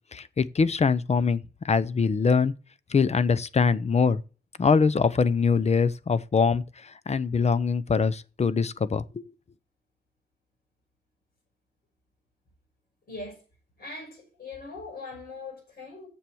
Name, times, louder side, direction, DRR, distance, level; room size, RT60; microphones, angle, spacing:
voice 1, 0.1-2.5 2.9-4.2 4.6-6.6 7.1-9.0, left 5 dB, 35° left, 0.6 m, -23 dB
voice 2, 13.1-13.4 13.8-16.1, left 3 dB, 60° left, 5.8 m, -40 dB
7.2 x 7.0 x 7.7 m
wide cardioid pair, 120°, 19 cm